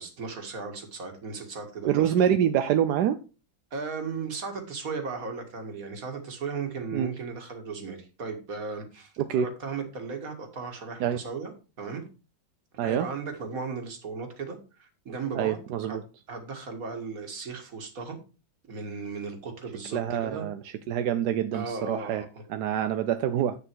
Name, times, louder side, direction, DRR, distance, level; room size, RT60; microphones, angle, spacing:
voice 1, 0.0-2.1 3.7-11.5 11.8-12.0 12.8-16.0 16.3-18.2 18.7-20.5 21.5-22.4, right 4 dB, 45° right, 4 dB, 2.1 m, -36 dB
voice 2, 1.8-3.2 6.9-7.1 9.2-9.5 11.0-11.2 12.8-13.1 15.3-16.0 19.9-22.2 22.5-23.6, right 10 dB, 70° right, 9 dB, 1.0 m, -26 dB
8.7 x 6.8 x 4.6 m, 0.32 s
omnidirectional pair, 2.2 m